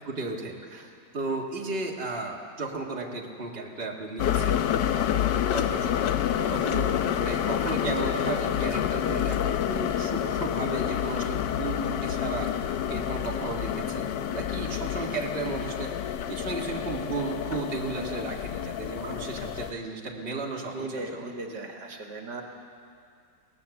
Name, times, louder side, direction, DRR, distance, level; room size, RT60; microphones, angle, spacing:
voice 1, 0.1-0.5 1.1-5.0 5.4-6.1 6.5-12.5 12.9-15.9 16.3-21.3, right 3 dB, 35° right, -1 dB, 2.1 m, -34 dB
sound 1, 4.2-19.7, left 10 dB, 80° left, 1.4 m, -28 dB
voice 2, 20.6-22.4, right 2 dB, 70° right, 2 dB, 2.3 m, -38 dB
22.5 x 18.5 x 7.1 m, 2.3 s
omnidirectional pair, 1.9 m